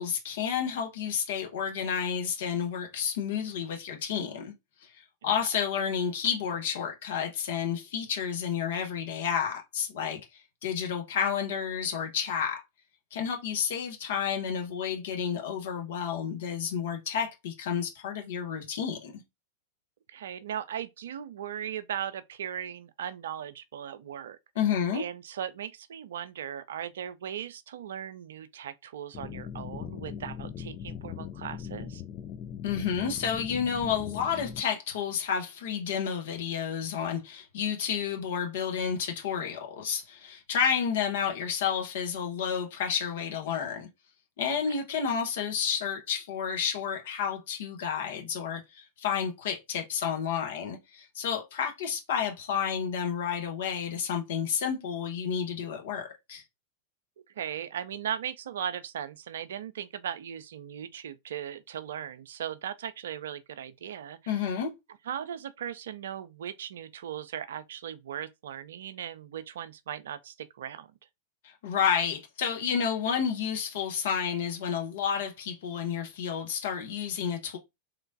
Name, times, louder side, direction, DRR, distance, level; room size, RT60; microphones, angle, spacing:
voice 1, 0.0-4.5 4.8-10.3 10.6-12.6 13.1-19.1 24.5-25.0 32.6-43.9 44.4-56.4 64.3-64.7 71.4-77.6, left 7 dB, 55° left, 0.9 m, -30 dB
voice 2, 20.1-24.4 24.9-32.0 44.5-44.6 57.4-64.4 65.1-70.9, right 9 dB, 60° right, 0.3 m, -38 dB
sound 1, 29.1-34.6, left 8 dB, 35° left, 0.3 m, -40 dB
3.2 x 2.9 x 2.5 m
figure-of-eight pair, 90°, 0 cm